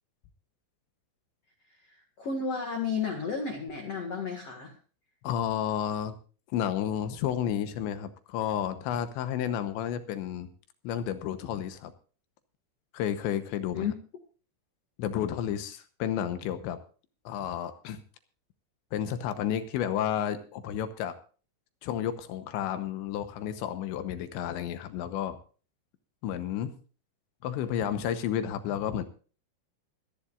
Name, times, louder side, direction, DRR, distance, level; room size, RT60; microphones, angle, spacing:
voice 1, 1.7-4.8 13.7-13.9, left 5 dB, 55° left, 2 dB, 1.7 m, -33 dB
voice 2, 5.2-6.2 6.5-10.5 10.8-11.9 12.9-13.9 15.0-16.8 17.3-18.0 18.9-21.1 21.8-25.4 26.2-26.8 27.4-29.0, left 10 dB, 75° left, 10 dB, 2.9 m, -31 dB
25.0 x 10.5 x 2.5 m, 0.38 s
omnidirectional pair, 5.9 m